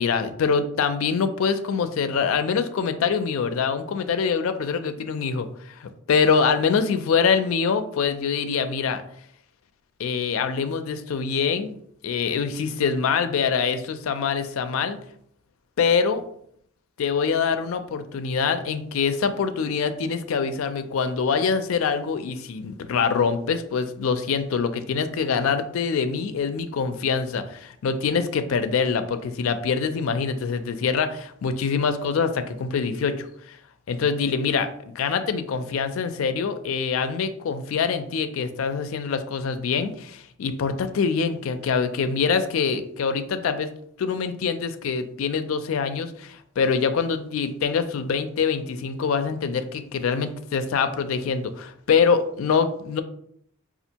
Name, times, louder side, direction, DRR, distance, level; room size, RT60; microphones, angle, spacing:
voice 1, 0.0-9.0 10.0-11.7 12.0-15.0 15.8-16.2 17.0-33.6 33.9-43.7 44.0-53.0, left 5 dB, 80° left, 10 dB, 0.4 m, -24 dB
4.3 x 2.4 x 2.8 m, 0.67 s
head